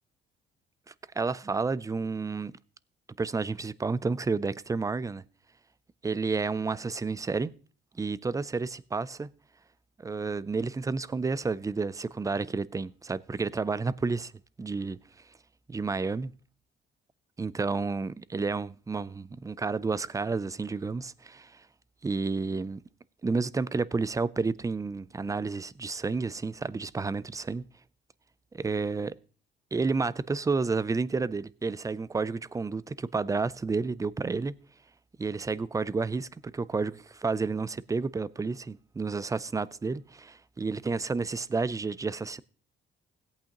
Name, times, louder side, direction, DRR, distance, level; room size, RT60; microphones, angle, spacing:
voice 1, 1.2-2.5 3.2-5.2 6.0-7.5 8.0-9.3 10.0-14.3 14.6-15.0 15.7-16.3 17.4-21.6 22.0-22.8 23.2-27.6 28.5-29.1 29.7-34.5 35.2-42.4, right 4 dB, 15° right, 0.4 m, -30 dB
16.5 x 8.5 x 2.9 m
cardioid pair, 90°, 20 cm